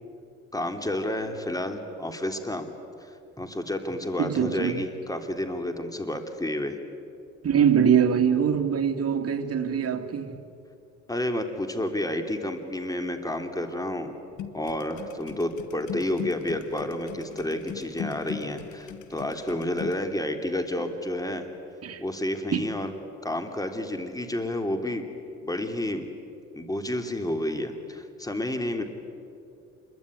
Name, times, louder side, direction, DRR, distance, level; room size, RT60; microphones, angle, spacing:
voice 1, 0.5-2.7 3.0-3.1 3.4-6.8 11.1-14.1 14.5-21.5 22.0-22.9 23.2-25.0 25.4-26.1 26.5-28.8, left 1 dB, 10° left, 3.0 m, -30 dB
voice 2, 4.2-4.8 7.4-10.4 21.8-22.0 22.5-22.6, right 8 dB, 50° right, 2.3 m, -23 dB
sound 1, 14.4-20.0, left 9 dB, 75° left, 1.7 m, -39 dB
27.0 x 22.5 x 9.6 m
cardioid pair, 90°, 30 cm